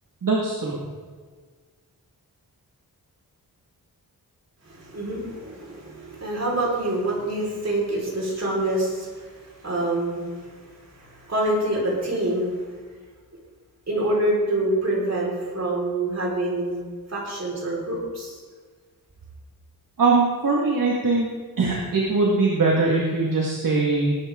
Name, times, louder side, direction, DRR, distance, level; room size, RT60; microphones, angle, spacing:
voice 1, 0.2-0.8 20.0-21.3 21.6-24.2, right 3 dB, 60° right, -3 dB, 2.0 m, -21 dB
voice 2, 4.6-12.6 13.9-18.4, right 1 dB, 45° right, -4 dB, 4.8 m, -26 dB
19.5 x 9.7 x 3.8 m, 1.5 s
wide cardioid pair, 110°, 37 cm